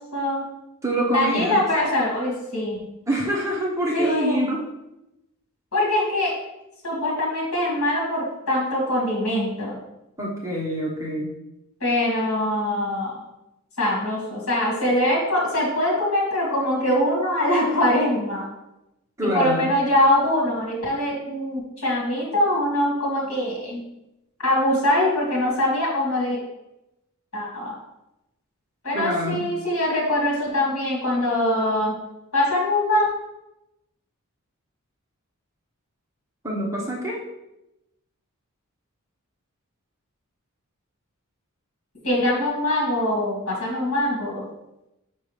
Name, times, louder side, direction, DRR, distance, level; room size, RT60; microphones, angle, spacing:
voice 1, 0.1-0.4 1.1-2.8 3.9-4.5 5.7-6.3 6.8-9.8 11.8-13.2 13.8-18.5 19.2-23.8 24.4-26.4 27.3-27.8 28.8-32.0 32.3-33.1 42.0-44.4, left 1 dB, 75° left, -3 dB, 2.3 m, -23 dB
voice 2, 0.8-1.6 3.1-4.7 10.2-11.4 19.2-19.7 28.9-29.4 36.4-37.2, right 1 dB, 15° right, -4 dB, 1.2 m, -26 dB
5.7 x 5.5 x 3.4 m, 0.90 s
head